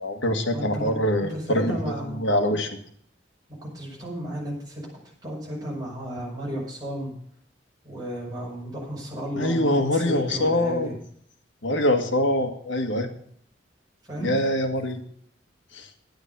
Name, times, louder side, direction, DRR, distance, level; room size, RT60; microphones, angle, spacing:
voice 1, 0.0-1.8 2.1-2.8 9.4-10.9 11.6-13.1 14.2-15.0 15.7-15.9, left 1 dB, 80° left, 6 dB, 1.8 m, -24 dB
voice 2, 0.5-0.9 1.2-2.2 3.6-4.8 5.2-7.1 7.8-10.9 14.1-14.4, equal, 20° right, -5 dB, 5.9 m, -33 dB
11.5 x 9.2 x 6.9 m, 0.62 s
head